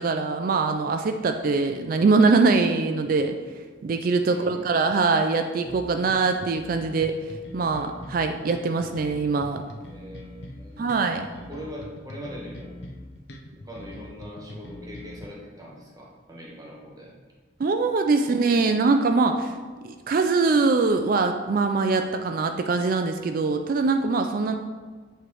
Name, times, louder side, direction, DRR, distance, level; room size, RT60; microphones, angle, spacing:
voice 1, 0.0-3.4 3.8-9.6 10.8-11.3 17.6-19.5 19.8-24.6, right 4 dB, 50° right, 6 dB, 0.3 m, -23 dB
voice 2, 4.2-4.7 9.9-10.9 11.4-12.8 13.6-17.1 18.5-18.6, equal, 20° right, -3 dB, 1.3 m, -41 dB
sound 1, 5.6-15.2, left 1 dB, 65° left, 0.7 m, -42 dB
7.5 x 3.3 x 4.7 m, 1.4 s
head